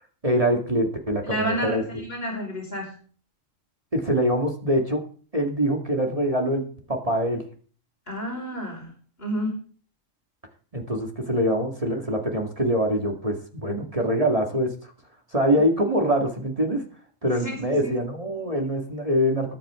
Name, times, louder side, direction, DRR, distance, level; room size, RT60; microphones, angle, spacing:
voice 1, 0.2-1.8 3.9-5.0 5.3-7.4 10.7-14.9 15.3-16.8 17.2-19.5, equal, 25° right, 1 dB, 2.3 m, -24 dB
voice 2, 1.2-2.9 8.1-8.9 9.2-9.6 17.4-17.9, equal, 50° left, 0 dB, 5.2 m, -30 dB
21.5 x 9.2 x 3.8 m, 0.42 s
omnidirectional pair, 1.3 m